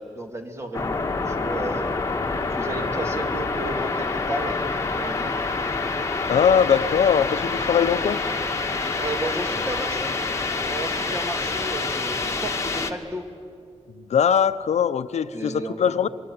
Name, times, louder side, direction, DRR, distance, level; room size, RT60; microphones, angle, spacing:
voice 1, 0.0-2.0 2.5-4.6 4.9-5.4 9.0-10.2 10.6-13.3 15.3-16.0, right 1 dB, 25° right, 5 dB, 2.4 m, -33 dB
sound 1, 0.7-12.9, left 3 dB, 25° left, 1.6 m, -27 dB
voice 2, 6.3-8.2 14.1-16.1, left 7 dB, 70° left, 12 dB, 0.8 m, -21 dB
26.0 x 23.0 x 9.5 m, 2.4 s
wide cardioid pair, 175°, 12 cm